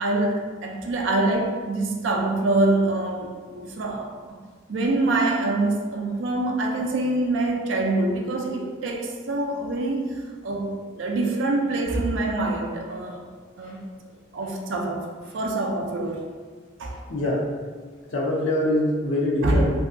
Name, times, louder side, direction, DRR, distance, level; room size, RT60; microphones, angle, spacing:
voice 1, 0.0-4.4 4.7-13.2 13.6-13.8 14.3-15.0 15.3-16.2 16.8-17.0 19.4-19.6, right 2 dB, 70° right, 0 dB, 0.4 m, -25 dB
voice 2, 17.1-17.5 18.1-19.7, left 1 dB, 70° left, -3 dB, 0.6 m, -24 dB
2.6 x 2.3 x 2.5 m, 1.5 s
head